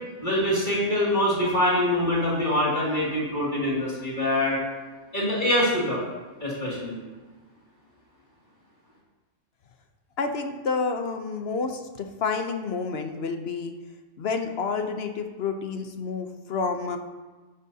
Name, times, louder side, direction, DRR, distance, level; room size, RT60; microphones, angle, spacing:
voice 1, 0.2-4.6 5.1-6.0 6.4-7.0, left 1 dB, 40° left, -7 dB, 2.7 m, -24 dB
voice 2, 10.2-13.7 14.2-17.0, left 4 dB, 60° left, 5 dB, 1.0 m, -29 dB
11.0 x 11.0 x 2.8 m, 1.3 s
omnidirectional pair, 1.3 m